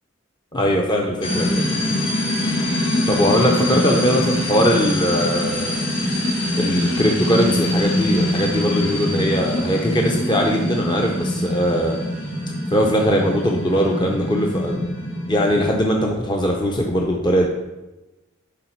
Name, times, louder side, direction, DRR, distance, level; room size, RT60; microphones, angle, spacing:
voice 1, 0.5-1.6 3.1-5.8 6.6-12.0 12.7-14.8 15.3-17.5, equal, 25° left, 0 dB, 0.7 m, -20 dB
sound 1, 1.2-15.7, left 1 dB, 80° left, 2.1 m, -23 dB
11.0 x 4.0 x 4.5 m, 1.1 s
head